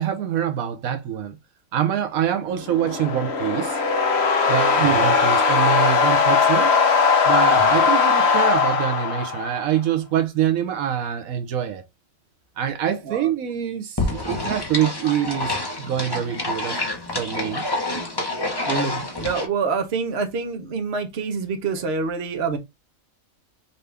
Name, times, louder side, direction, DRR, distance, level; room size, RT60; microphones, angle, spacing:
voice 1, 0.0-1.4 1.7-3.8 4.5-6.7 7.3-11.8 12.6-16.8 17.2-17.7, right 10 dB, 85° right, 1.2 m, -25 dB
sound 1, 2.6-9.7, left 5 dB, 55° left, 1.1 m, -19 dB
voice 2, 4.8-5.2 7.5-7.8 13.1-13.2 18.6-22.6, right 5 dB, 55° right, 1.1 m, -27 dB
sound 2, 14.0-19.5, left 2 dB, 20° left, 1.0 m, -27 dB
5.5 x 2.6 x 3.4 m
omnidirectional pair, 1.4 m